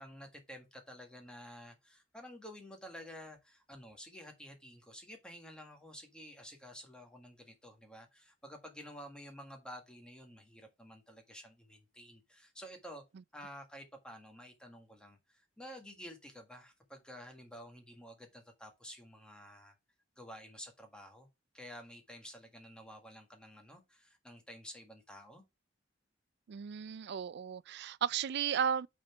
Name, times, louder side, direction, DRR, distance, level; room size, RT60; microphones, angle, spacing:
voice 1, 0.0-13.0 13.3-19.7 20.2-21.3 21.5-25.4, equal, 5° left, 1.7 m, -51 dB
voice 2, 26.5-28.9, right 8 dB, 60° right, 0.4 m, -34 dB
6.3 x 4.3 x 6.0 m
head